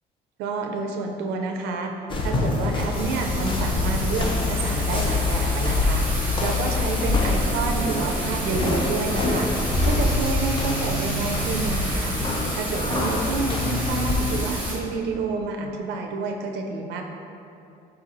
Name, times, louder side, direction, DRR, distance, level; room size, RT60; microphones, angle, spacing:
voice 1, 0.4-9.5 9.8-12.2 12.5-17.0, right 3 dB, 85° right, 3 dB, 0.4 m, -29 dB
sound 1, 2.1-14.1, left 3 dB, 30° left, 0.5 m, -25 dB
Thunder / Rain, 2.9-14.7, right 1 dB, 10° right, 1.2 m, -30 dB
sound 2, 7.5-9.6, right 2 dB, 30° right, 0.6 m, -39 dB
4.1 x 4.1 x 2.5 m, 2.7 s
cardioid pair, 110°, 17 cm